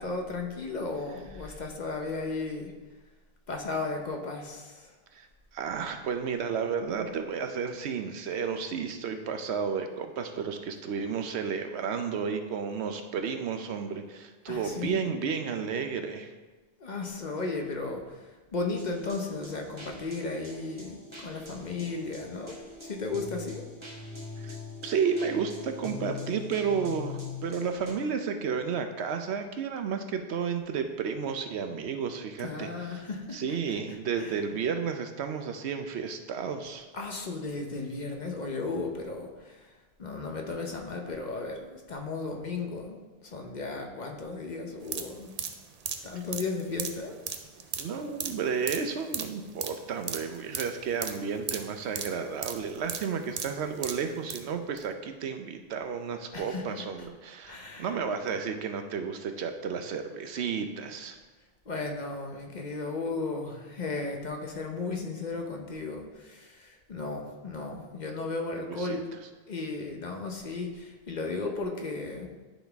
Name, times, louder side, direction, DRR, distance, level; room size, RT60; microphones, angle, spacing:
voice 1, 0.0-2.7 3.5-4.9 14.5-15.1 16.8-21.0 21.2-22.6 22.8-23.6 32.4-33.7 34.2-34.4 36.9-39.7 40.0-43.0 43.2-45.3 46.0-47.2 56.3-56.9 57.4-58.0 61.7-69.1 69.5-72.3, left 3 dB, 45° left, 2 dB, 0.8 m, -35 dB
voice 2, 5.5-16.3 24.4-24.6 24.8-33.0 33.3-36.9 47.8-61.2 68.6-69.0, right 6 dB, 80° right, 7 dB, 0.9 m, -32 dB
sound 1, 18.8-27.9, left 4 dB, 25° right, 1.2 m, -43 dB
sound 2, 44.8-54.4 54.8-54.9, right 6 dB, 50° right, 0.5 m, -37 dB
11.5 x 4.0 x 3.4 m, 1.3 s
omnidirectional pair, 1.1 m